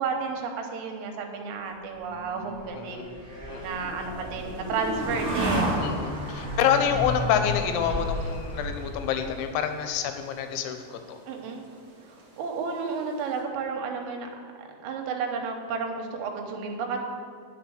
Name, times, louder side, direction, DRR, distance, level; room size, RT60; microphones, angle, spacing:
voice 1, 0.0-3.1 3.6-5.9 11.3-11.7 12.4-14.3 14.6-17.0, right 5 dB, 85° right, 3 dB, 3.6 m, -32 dB
sound 1, 2.0-9.4, equal, 15° right, 1.8 m, -32 dB
voice 2, 2.7-3.1 3.5-3.8 5.8-11.2, left 8 dB, 85° left, 7 dB, 2.9 m, -27 dB
sound 2, 3.6-13.4, right 2 dB, 65° right, 1.6 m, -51 dB
9.5 x 6.8 x 6.3 m, 2.2 s
omnidirectional pair, 5.7 m